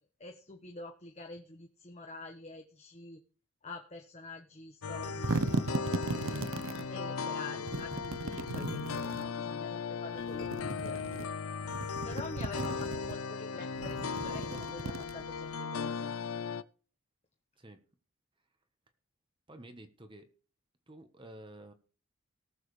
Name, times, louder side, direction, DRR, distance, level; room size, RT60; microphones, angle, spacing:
voice 1, 0.2-3.2 3.6-5.8 6.9-11.0 12.0-16.1, left 3 dB, 30° left, 4 dB, 1.1 m, -46 dB
sound 1, 4.8-16.6, left 5 dB, 80° left, 0.6 m, -37 dB
sound 2, 4.9-6.9 7.7-9.3 10.2-11.3 11.6-13.1 13.7-15.5, right 2 dB, 70° right, 0.9 m, -36 dB
voice 2, 7.4-7.7 11.9-12.2 12.5-12.9 17.6-17.8 19.5-20.3 20.9-21.7, right 1 dB, 20° right, 8 dB, 1.2 m, -51 dB
19.0 x 7.5 x 3.3 m, 0.40 s
head